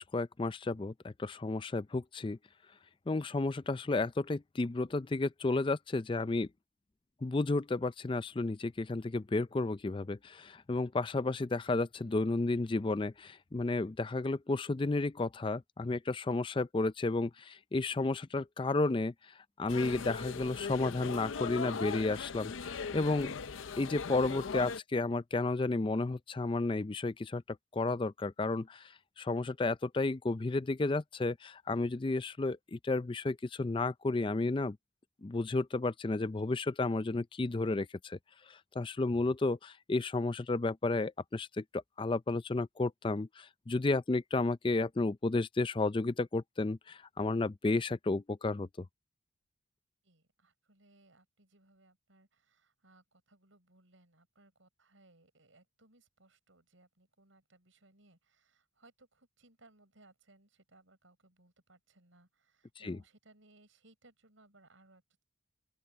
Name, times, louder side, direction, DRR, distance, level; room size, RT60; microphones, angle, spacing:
voice 1, 0.0-2.4 3.1-6.5 7.2-19.1 19.6-23.3 23.8-27.4 27.7-28.8 29.2-34.8 35.2-38.2 38.5-48.7 62.8-63.0, left 2 dB, 25° left, 0.4 m, -32 dB
sound 1, 19.7-24.8, left 5 dB, 75° left, 0.6 m, -39 dB
voice 2, 50.0-65.2, right 2 dB, 75° right, 5.3 m, -65 dB
open air
head